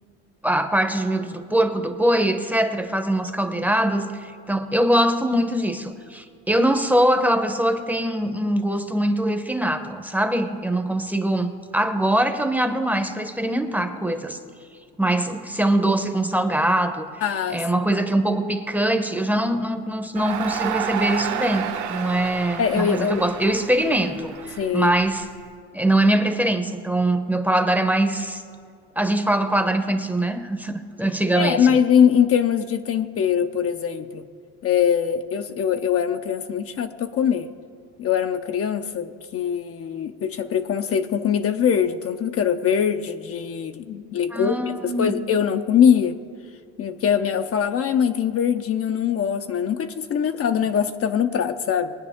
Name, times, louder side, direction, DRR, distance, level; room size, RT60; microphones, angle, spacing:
voice 1, 0.4-14.4 15.0-17.1 17.5-25.3 25.7-28.4 29.0-31.8 44.3-45.1, right 1 dB, 5° right, 8 dB, 0.9 m, -22 dB
voice 2, 17.2-17.7 22.6-23.2 24.6-24.9 31.3-34.2 34.6-37.5 38.0-44.6 45.0-46.2 46.8-51.9, left 8 dB, 40° left, 7 dB, 0.7 m, -22 dB
Crowd, 20.1-25.3, right 8 dB, 55° right, 1.3 m, -30 dB
21.5 x 9.4 x 3.6 m, 2.2 s
supercardioid pair, 90°, 34 cm